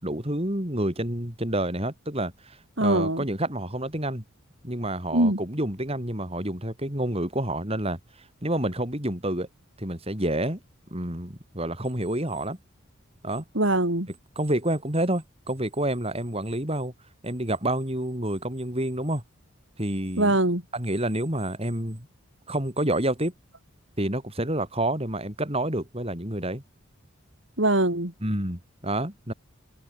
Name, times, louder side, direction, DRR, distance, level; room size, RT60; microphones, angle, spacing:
voice 1, 0.0-4.2 4.6-8.0 8.4-9.5 9.8-10.6 10.9-12.6 13.2-13.4 14.3-16.9 17.2-19.2 19.8-20.3 20.7-22.1 22.5-23.3 24.0-26.6 28.2-29.3, right 1 dB, 30° right, 4.8 m, -28 dB
voice 2, 2.8-3.2 5.1-5.4 13.5-14.1 20.2-20.6 27.6-28.1, right 1 dB, 60° right, 4.4 m, -22 dB
open air
head